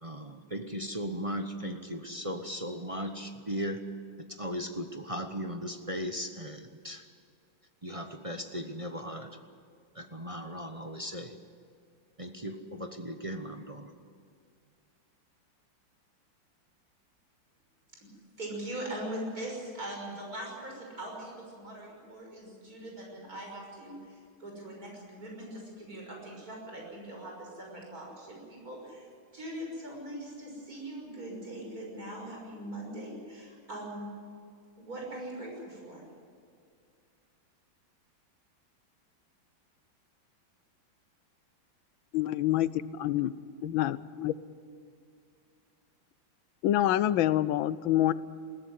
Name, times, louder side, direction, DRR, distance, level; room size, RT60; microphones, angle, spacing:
voice 1, 0.0-3.8 4.3-7.1 7.8-9.4 9.9-11.4 12.2-13.9, equal, 25° right, 5 dB, 0.7 m, -37 dB
voice 2, 18.4-34.1 34.8-36.0, right 1 dB, 45° right, -1 dB, 6.6 m, -41 dB
voice 3, 42.1-43.3 43.6-44.4 46.6-48.1, left 13 dB, 80° left, 16 dB, 1.5 m, -27 dB
21.0 x 16.5 x 9.7 m, 2.3 s
omnidirectional pair, 2.2 m